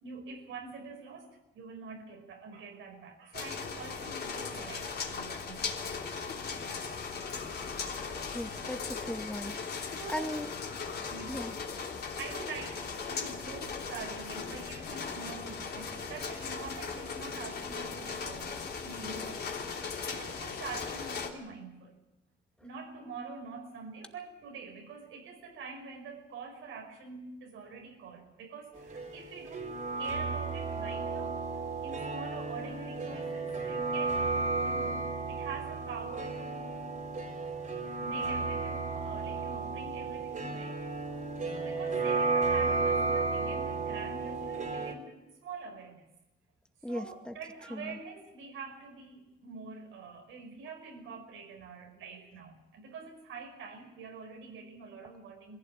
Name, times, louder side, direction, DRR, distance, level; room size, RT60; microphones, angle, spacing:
voice 1, 0.0-7.7 10.0-10.3 11.1-11.5 12.2-21.9 22.6-29.7 30.0-31.4 31.8-34.3 34.6-36.8 38.0-40.8 41.2-46.1 46.8-55.6, right 4 dB, 85° right, 4 dB, 5.2 m, -45 dB
sound 1, 3.3-21.3, left 5 dB, 55° left, 3.3 m, -38 dB
voice 2, 8.3-10.5 11.3-11.5 46.8-47.3 47.7-48.0, left 1 dB, 5° left, 5 dB, 2.3 m, -38 dB
sound 2, 28.7-44.9, right 3 dB, 40° right, 4.2 m, -33 dB
21.5 x 16.0 x 9.1 m, 0.99 s
cardioid pair, 90°, 20 cm